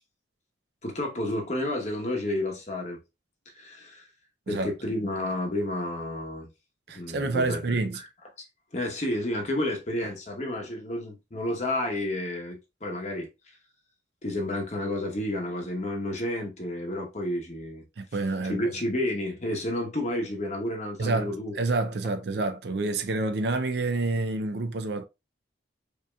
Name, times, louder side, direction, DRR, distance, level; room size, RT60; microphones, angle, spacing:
voice 1, 0.8-3.0 3.5-4.0 4.5-6.5 6.9-8.1 8.7-13.3 14.2-17.9 18.5-21.6, left 1 dB, 35° left, 1.0 m, -31 dB
voice 2, 6.9-8.0 18.0-18.6 21.0-25.1, right 3 dB, 60° right, 0.5 m, -28 dB
5.2 x 2.7 x 2.3 m
head